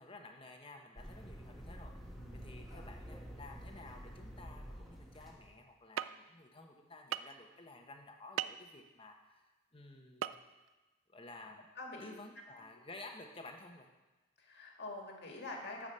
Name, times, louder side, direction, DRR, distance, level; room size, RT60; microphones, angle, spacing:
voice 1, 0.0-1.9 2.3-9.4 9.7-10.3 11.1-11.7 12.0-13.9, left 2 dB, 25° left, 3 dB, 1.1 m, -53 dB
sound 1, 1.0-5.6, equal, ahead, 1.2 m, -49 dB
voice 2, 2.2-2.9 11.8-12.1 14.4-15.9, left 2 dB, 55° left, 0 dB, 2.0 m, -46 dB
sound 2, 6.0-6.1 7.1-7.4 8.4-8.6 10.2-10.4 10.7-10.8, right 10 dB, 75° right, 0.3 m, -36 dB
12.0 x 5.0 x 7.5 m, 1.2 s
head